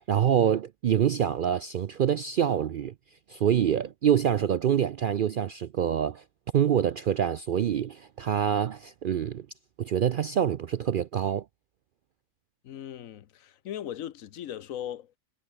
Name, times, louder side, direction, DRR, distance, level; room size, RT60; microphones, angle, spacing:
voice 1, 0.1-2.9 3.3-6.2 6.5-9.5 9.8-11.4, right 9 dB, 65° right, 0.5 m, -26 dB
voice 2, 12.6-15.2, left 10 dB, 80° left, 1.2 m, -38 dB
omnidirectional pair, 1.4 m